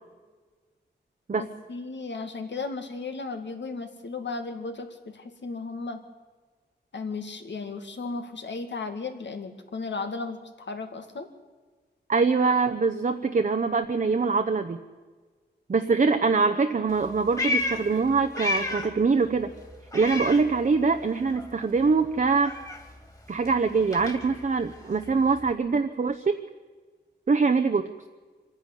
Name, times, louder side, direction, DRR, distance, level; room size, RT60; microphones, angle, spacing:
voice 1, 1.4-6.0 6.9-11.3, left 3 dB, 80° left, 6 dB, 2.1 m, -35 dB
voice 2, 12.1-14.8 15.7-19.5 19.9-22.5 23.3-26.4 27.3-27.9, right 4 dB, 45° right, 6 dB, 0.9 m, -23 dB
Meow, 16.9-19.0 19.3-21.1 21.3-25.5, left 2 dB, 20° left, 2.7 m, -33 dB
25.0 x 10.5 x 10.0 m, 1.4 s
wide cardioid pair, 115°, 18 cm